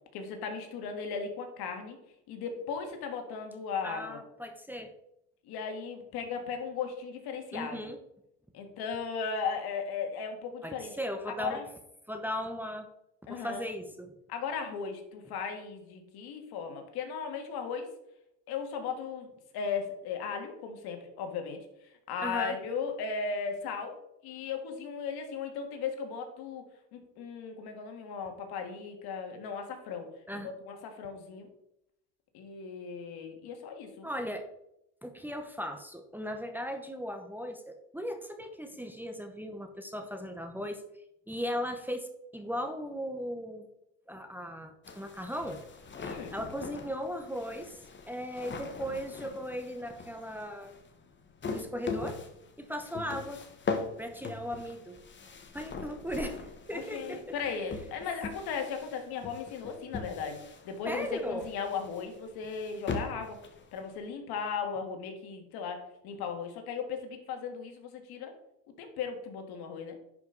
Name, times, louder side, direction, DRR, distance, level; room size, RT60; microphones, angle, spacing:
voice 1, 0.1-2.0 2.3-4.2 5.4-7.8 8.5-11.0 11.3-11.6 13.3-13.6 14.3-17.9 18.5-24.0 24.2-26.6 26.9-30.1 30.3-31.5 32.3-34.1 46.0-46.4 56.7-63.4 63.7-68.4 68.8-70.0, left 6 dB, 70° left, 5 dB, 1.8 m, -37 dB
voice 2, 3.8-4.9 7.5-8.0 10.6-11.6 12.1-12.9 13.3-14.1 22.2-22.6 30.3-30.5 34.0-34.5 35.0-40.8 41.3-42.1 42.3-43.7 44.1-45.6 46.0-47.8 48.1-50.7 51.5-52.2 52.6-53.4 54.0-55.0 55.5-57.2 60.8-61.4, equal, 5° right, 5 dB, 0.9 m, -37 dB
sound 1, 44.8-64.1, left 4 dB, 30° left, 1.3 m, -41 dB
10.5 x 5.2 x 3.9 m, 0.81 s
cardioid pair, 110°, 39 cm